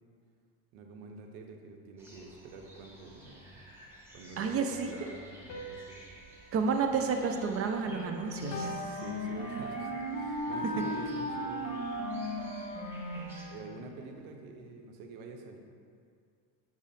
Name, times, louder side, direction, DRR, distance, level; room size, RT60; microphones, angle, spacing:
voice 1, 0.7-3.6 4.1-5.4 5.7-6.0 8.5-11.8 13.5-15.6, right 3 dB, 85° right, 3 dB, 0.6 m, -47 dB
sound 1, 2.0-13.4, right 1 dB, 5° right, 0.9 m, -53 dB
voice 2, 4.4-5.1 6.5-8.7, right 5 dB, 35° right, 5 dB, 0.4 m, -30 dB
sound 2, 5.5-8.0 8.5-10.0, left 2 dB, 45° left, 0.6 m, -46 dB
Wind instrument woodwind instrument, 7.8-14.0, equal, 15° left, 1.2 m, -37 dB
5.9 x 2.0 x 4.1 m, 2.2 s
supercardioid pair, 85°, 41 cm